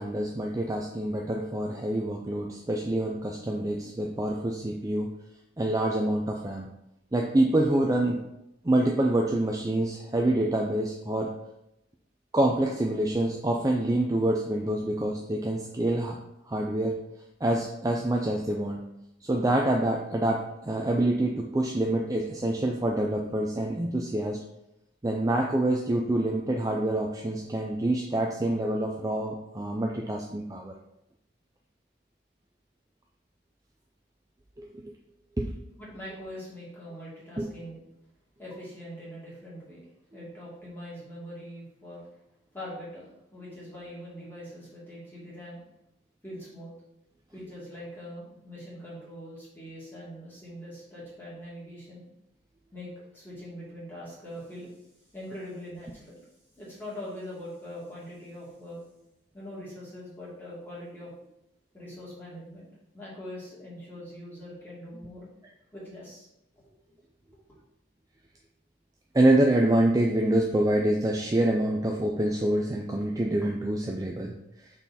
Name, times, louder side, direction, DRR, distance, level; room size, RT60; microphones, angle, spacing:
voice 1, 0.0-5.1 5.6-6.7 7.1-8.2 8.6-11.3 12.3-16.2 16.5-17.0 17.4-18.8 19.2-24.4 25.0-30.7 34.6-34.8 35.4-35.6 37.4-37.5 69.1-74.3, right 1 dB, 15° right, 0 dB, 0.4 m, -26 dB
voice 2, 35.8-37.8 38.4-39.9 40.1-42.1 42.5-45.6 46.2-46.7 47.3-52.0 52.7-54.7 55.1-56.2 56.6-58.8 59.3-61.1 61.7-62.7 62.9-65.3 65.7-66.3 66.6-66.7, equal, 10° left, -8 dB, 2.2 m, -42 dB
6.0 x 4.0 x 4.1 m, 0.84 s
head